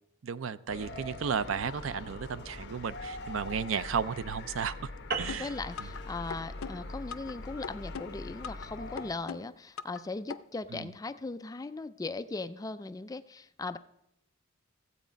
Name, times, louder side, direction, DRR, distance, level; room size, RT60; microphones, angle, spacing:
voice 1, 0.2-4.9 5.2-5.5 10.7-10.9, right 6 dB, 65° right, 16 dB, 0.5 m, -33 dB
sound 1, 0.7-9.2, left 2 dB, 55° left, 1.2 m, -43 dB
sound 2, 5.1-9.8, right 5 dB, 50° right, 0.9 m, -41 dB
sound 3, 5.3-6.0 6.3-7.3 7.6-8.7 9.0-10.0 10.3-10.4, left 6 dB, 85° left, 0.5 m, -40 dB
voice 2, 5.3-13.8, left 3 dB, 15° left, 12 dB, 0.3 m, -38 dB
15.0 x 8.1 x 5.1 m, 0.81 s
head